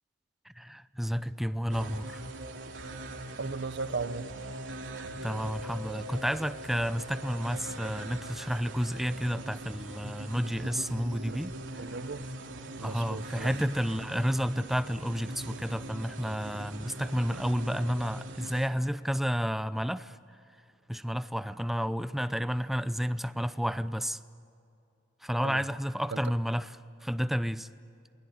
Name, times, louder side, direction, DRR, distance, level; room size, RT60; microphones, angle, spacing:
voice 1, 0.6-2.2 4.9-11.9 12.8-20.2 20.9-24.2 25.2-26.8 27.0-27.7, equal, ahead, 0.6 m, -31 dB
sound 1, 1.7-18.7, right 1 dB, 80° right, 2.8 m, -41 dB
voice 2, 3.4-4.3 11.3-11.4 11.8-12.2 12.8-13.5 25.4-25.6 26.1-26.2, right 4 dB, 65° right, 0.8 m, -36 dB
28.5 x 21.0 x 9.4 m
head